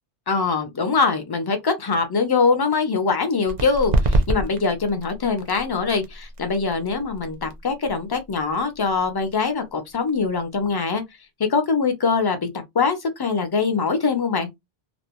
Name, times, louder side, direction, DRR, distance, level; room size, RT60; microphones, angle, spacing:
voice 1, 0.3-11.0 11.5-12.5 12.7-14.5, left 4 dB, 30° left, 0.4 m, -23 dB
sound 1, 3.4-10.8, right 1 dB, 50° right, 0.6 m, -28 dB
2.5 x 2.1 x 2.8 m
omnidirectional pair, 1.1 m